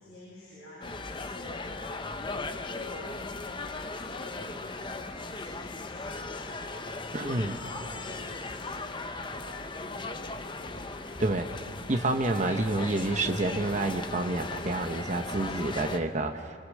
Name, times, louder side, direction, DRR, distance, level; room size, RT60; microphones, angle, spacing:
voice 1, 0.0-11.2, left 1 dB, 55° left, -8 dB, 7.9 m, -48 dB
sound 1, 0.8-16.0, left 3 dB, 25° left, 0.8 m, -38 dB
voice 2, 7.1-7.5 11.2-11.5 11.9-16.5, right 2 dB, 40° right, 5 dB, 0.9 m, -28 dB
25.0 x 25.0 x 6.5 m, 2.4 s
head